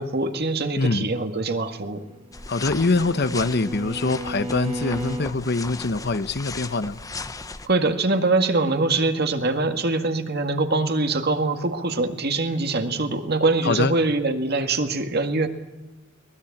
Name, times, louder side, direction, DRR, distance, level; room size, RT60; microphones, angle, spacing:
voice 1, 0.0-2.0 7.6-15.5, right 3 dB, 55° right, 7 dB, 2.0 m, -23 dB
voice 2, 0.8-1.1 2.5-7.0 13.6-13.9, left 3 dB, 55° left, 13 dB, 0.9 m, -24 dB
Bowed string instrument, 2.0-5.4, right 1 dB, 30° right, 1.5 m, -35 dB
sound 1, 2.3-7.7, left 3 dB, 15° left, 0.9 m, -37 dB
23.0 x 19.5 x 8.6 m, 1.1 s
head